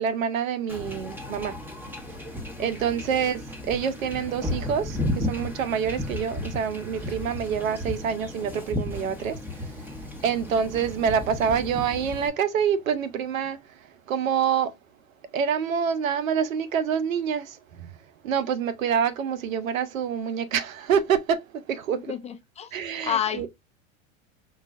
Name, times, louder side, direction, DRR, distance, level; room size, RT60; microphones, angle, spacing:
voice 1, 0.0-1.6 2.6-9.4 10.2-13.6 14.1-14.7 15.3-17.9 18.2-21.4 21.7-22.1 22.7-23.5, right 7 dB, 80° right, 0.7 m, -26 dB
Wind / Ocean / Boat Water vehicle, 0.7-12.3, left 1 dB, 5° right, 0.8 m, -34 dB
voice 2, 22.1-22.7 23.0-23.5, left 9 dB, 20° left, 0.4 m, -29 dB
5.2 x 2.3 x 2.4 m
hypercardioid pair, 95°, 40 cm